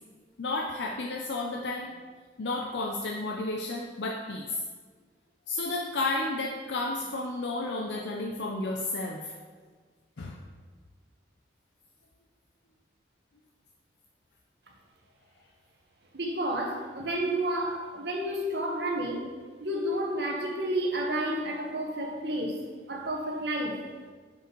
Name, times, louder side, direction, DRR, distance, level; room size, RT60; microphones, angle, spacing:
voice 1, 0.4-1.9 2.4-4.5 5.5-9.3 10.2-10.4, left 2 dB, 75° left, 0 dB, 0.6 m, -32 dB
voice 2, 16.1-19.3 19.6-23.8, right 1 dB, 65° right, 1 dB, 1.1 m, -31 dB
6.7 x 5.4 x 4.6 m, 1.5 s
head